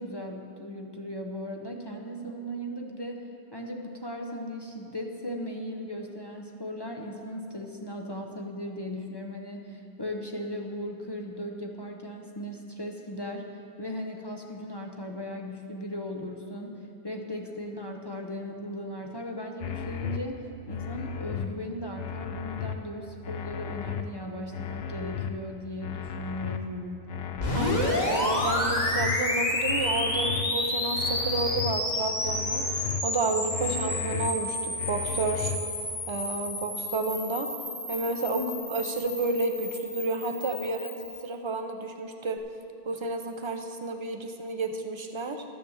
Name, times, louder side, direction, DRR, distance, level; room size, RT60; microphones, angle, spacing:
voice 1, 0.0-27.1 33.6-33.7 38.3-38.7, left 1 dB, 25° left, 1 dB, 0.7 m, -37 dB
sound 1, 19.6-20.2 20.7-21.5 22.0-22.7 23.2-24.0 24.5-25.3 25.8-26.6 27.1-27.9 28.4-29.1 29.6-30.4 30.9-31.7 32.2-33.0 33.5-34.3 34.8-35.6, left 8 dB, 70° left, 0.9 m, -35 dB
sound 2, 27.4-41.2, left 1 dB, 45° left, 1.9 m, -30 dB
voice 2, 27.5-35.5 36.1-37.5 37.9-38.4 38.7-42.4 42.9-45.4, right 2 dB, 30° right, 5 dB, 0.7 m, -31 dB
12.5 x 7.1 x 7.2 m, 2.8 s
omnidirectional pair, 1.1 m